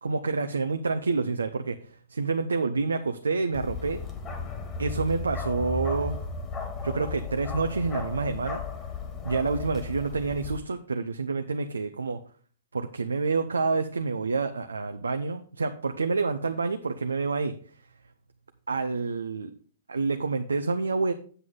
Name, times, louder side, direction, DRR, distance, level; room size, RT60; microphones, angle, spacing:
voice 1, 0.0-1.8 2.1-4.0 4.8-6.2 6.8-8.6 9.2-12.2 12.7-17.5 18.7-19.5 19.9-21.1, right 4 dB, 90° right, 6 dB, 0.7 m, -28 dB
Bark, 3.5-10.6, left 4 dB, 25° left, 2.0 m, -35 dB
8.1 x 7.7 x 3.8 m, 0.44 s
hypercardioid pair, 115°, 0 cm